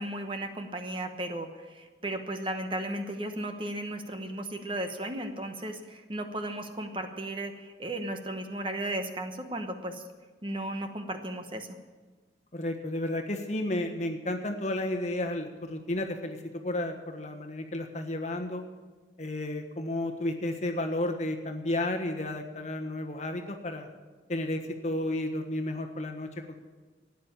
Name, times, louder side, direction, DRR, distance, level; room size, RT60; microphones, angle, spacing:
voice 1, 0.0-10.0 10.4-11.7, right 1 dB, 30° right, 6 dB, 1.1 m, -35 dB
voice 2, 12.5-18.6 19.2-23.9 24.3-26.5, left 1 dB, 40° left, 4 dB, 1.3 m, -32 dB
13.0 x 9.5 x 8.8 m, 1.4 s
head